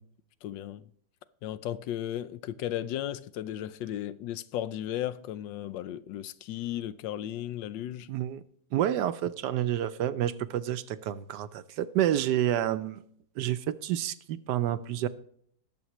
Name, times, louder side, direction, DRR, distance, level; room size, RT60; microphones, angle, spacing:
voice 1, 0.4-0.9 1.4-8.1, left 12 dB, 85° left, 1.3 m, -35 dB
voice 2, 8.1-8.4 8.7-13.0 13.4-15.1, right 11 dB, 75° right, 1.2 m, -29 dB
19.5 x 7.0 x 3.1 m
omnidirectional pair, 2.0 m